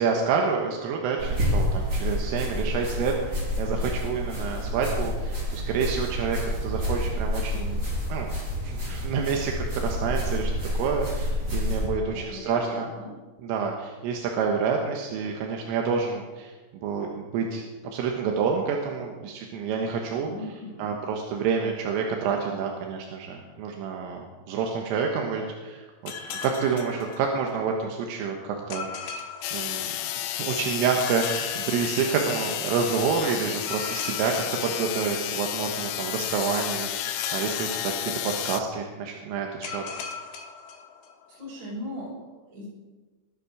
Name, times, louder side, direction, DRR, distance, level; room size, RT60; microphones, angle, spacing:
voice 1, 0.0-7.8 8.1-8.3 8.6-10.5 10.8-12.9 13.4-16.5 16.8-17.6 17.9-20.3 20.8-26.1 26.4-28.9 29.5-29.8 30.2-39.8, right 5 dB, 85° right, 1 dB, 3.9 m, -28 dB
sound 1, 1.2-11.9, equal, 20° right, 4.2 m, -28 dB
voice 2, 12.1-13.2 20.1-21.0 41.3-42.7, left 1 dB, 55° right, -4 dB, 8.0 m, -38 dB
sound 2, 26.1-27.8 28.7-30.4 31.0-32.7 33.6-35.6 37.0-38.8 39.6-41.4, left 6 dB, 70° left, 3.6 m, -39 dB
sound 3, 29.4-38.6, left 12 dB, 85° left, 3.2 m, -31 dB
20.0 x 10.0 x 6.2 m, 1.3 s
omnidirectional pair, 5.8 m